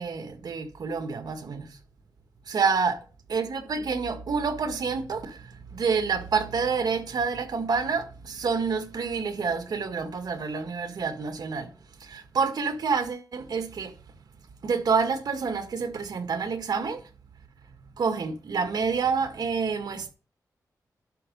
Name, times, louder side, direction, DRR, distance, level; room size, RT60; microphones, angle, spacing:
voice 1, 0.0-1.8 2.5-3.0 3.3-11.7 12.0-14.0 14.6-17.1 17.6-20.1, right 5 dB, 75° right, 1.7 m, -28 dB
11.5 x 6.3 x 5.3 m
wide cardioid pair, 90°, 7 cm